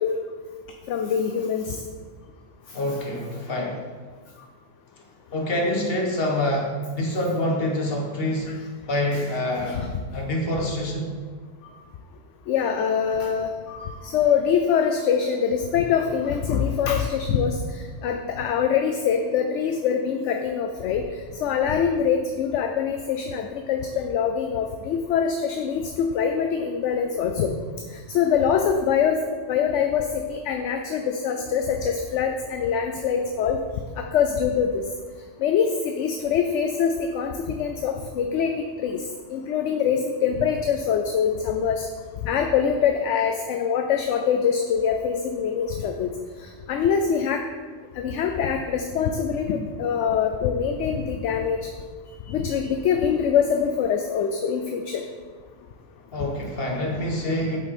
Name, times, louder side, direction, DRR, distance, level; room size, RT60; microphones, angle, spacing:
voice 1, 0.9-1.8 9.1-9.2 9.7-9.9 12.5-21.0 21.4-27.5 27.9-29.2 29.5-33.6 34.0-34.8 35.4-39.0 39.3-41.9 42.2-46.1 46.4-47.4 48.0-51.6 52.3-55.0, left 7 dB, 70° left, 4 dB, 0.8 m, -24 dB
voice 2, 2.7-3.9 5.3-8.6 8.9-9.8 10.1-11.1 56.1-57.6, left 1 dB, 50° left, -1 dB, 1.5 m, -26 dB
8.0 x 5.4 x 4.2 m, 1.5 s
omnidirectional pair, 1.4 m